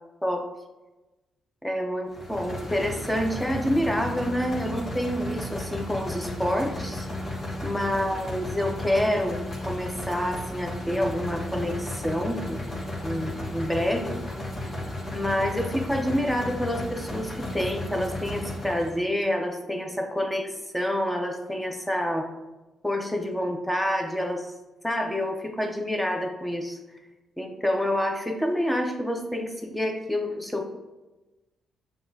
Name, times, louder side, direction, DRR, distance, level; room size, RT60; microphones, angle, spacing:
voice 1, 1.6-7.1 7.6-12.6 13.0-14.2 15.1-22.3 22.8-24.5 24.8-26.8 27.4-30.7, equal, 5° left, 2 dB, 0.6 m, -28 dB
sound 1, 2.1-19.0, left 1 dB, 40° left, 1.3 m, -34 dB
6.9 x 2.3 x 2.7 m, 1.1 s
cardioid pair, 85°, 0 cm